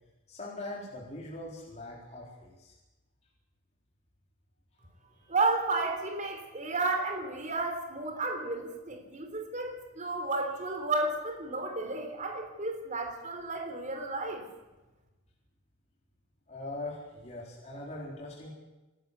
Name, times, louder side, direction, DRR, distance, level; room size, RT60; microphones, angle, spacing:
voice 1, 0.3-2.7 16.5-18.5, left 2 dB, 35° left, -3 dB, 4.2 m, -41 dB
voice 2, 5.3-14.4, right 3 dB, 40° right, 4 dB, 3.7 m, -32 dB
27.0 x 12.5 x 8.4 m, 1.1 s
head